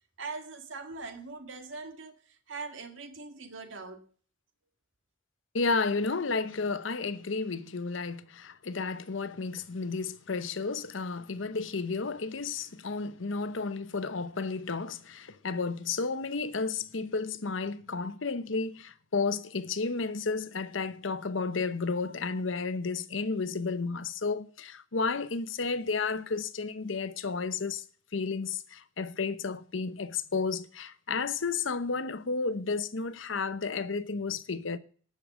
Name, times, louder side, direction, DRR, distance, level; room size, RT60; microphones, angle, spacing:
voice 1, 0.2-4.0, right 4 dB, 80° right, 1.8 m, -41 dB
voice 2, 5.5-27.8 28.1-34.8, left 4 dB, 85° left, 0.9 m, -32 dB
11.0 x 6.6 x 8.4 m
head